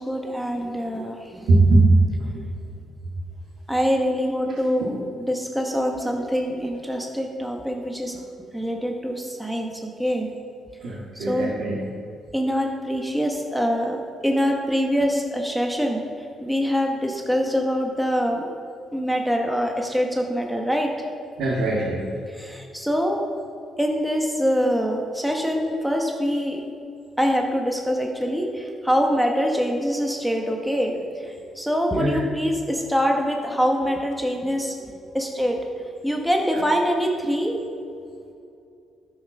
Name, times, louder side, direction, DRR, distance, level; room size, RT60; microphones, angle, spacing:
voice 1, 0.0-1.5 3.7-8.2 8.5-10.3 11.1-11.5 12.3-16.0 16.4-18.5 18.9-21.1 22.3-23.2 23.8-26.6 27.2-34.7 35.1-35.6 36.0-37.6, equal, ahead, 1 dB, 1.2 m, -24 dB
voice 2, 1.5-2.0 2.3-2.4 10.8-11.8 21.4-22.0 32.0-32.2, right 2 dB, 80° right, -5 dB, 1.9 m, -19 dB
12.5 x 5.7 x 6.0 m, 2.5 s
cardioid pair, 90°, 0 cm